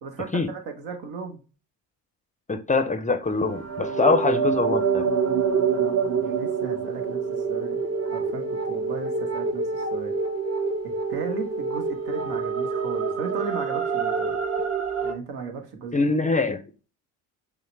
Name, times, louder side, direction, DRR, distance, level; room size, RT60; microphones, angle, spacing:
voice 1, 0.0-1.4 5.7-10.1 10.8-14.4 15.0-16.1, right 5 dB, 70° right, 1.2 m, -36 dB
voice 2, 2.5-5.1 15.9-16.6, left 3 dB, 20° left, 0.5 m, -23 dB
sound 1, 3.3-15.1, right 5 dB, 40° right, 0.9 m, -26 dB
5.5 x 2.1 x 3.2 m
supercardioid pair, 60°, 41 cm